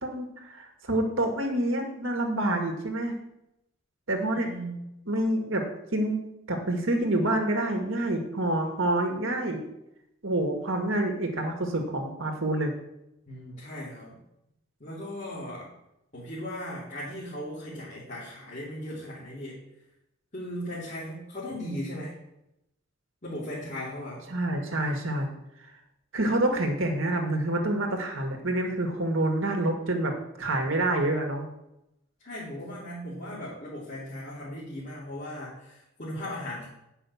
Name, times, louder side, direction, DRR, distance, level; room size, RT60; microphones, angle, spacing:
voice 1, 0.0-3.1 4.1-4.5 5.1-5.6 5.9-6.2 6.5-9.6 10.2-12.7 24.3-25.3 26.1-31.5, right 1 dB, 75° right, 3 dB, 1.8 m, -27 dB
voice 2, 4.3-4.9 13.3-14.2 14.8-15.7 16.1-19.6 20.3-22.2 23.2-24.2 32.2-36.7, equal, 35° left, -9 dB, 2.9 m, -37 dB
9.7 x 5.7 x 7.0 m, 0.86 s
head